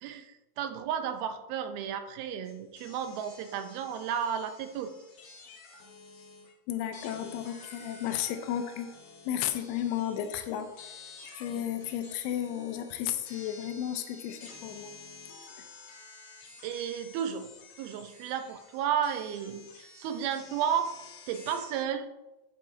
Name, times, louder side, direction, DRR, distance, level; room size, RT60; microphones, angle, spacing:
voice 1, 0.0-4.9 16.6-17.5 17.8-20.9 21.3-22.1, right 8 dB, 80° right, 8 dB, 2.5 m, -33 dB
sound 1, 2.4-6.5 6.9-21.8, left 4 dB, 55° left, 1.9 m, -51 dB
voice 2, 6.7-8.9 9.3-10.7 11.4-14.9 15.6-15.7, left 10 dB, 85° left, 7 dB, 2.7 m, -33 dB
11.0 x 7.8 x 2.7 m, 1.0 s
omnidirectional pair, 4.5 m